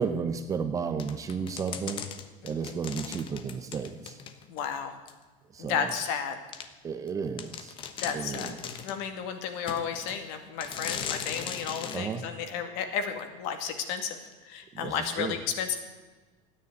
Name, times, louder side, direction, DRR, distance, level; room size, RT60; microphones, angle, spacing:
voice 1, 0.0-2.0 2.4-4.2 5.5-5.9 6.8-7.7 8.1-8.7 11.9-12.2 14.7-15.4, right 6 dB, 20° right, 9 dB, 0.8 m, -33 dB
sound 1, 1.0-4.6 5.1-5.2 5.9-6.0 6.5-6.7 7.1-7.2 7.4-9.0 9.7-10.2 10.6-12.0, left 8 dB, 30° left, 1.1 m, -38 dB
voice 2, 4.5-4.9 5.6-6.4 8.0-8.5 8.8-14.2 14.4-15.8, left 7 dB, 55° left, 6 dB, 2.3 m, -33 dB
14.5 x 9.9 x 9.4 m, 1.3 s
cardioid pair, 170°, 17 cm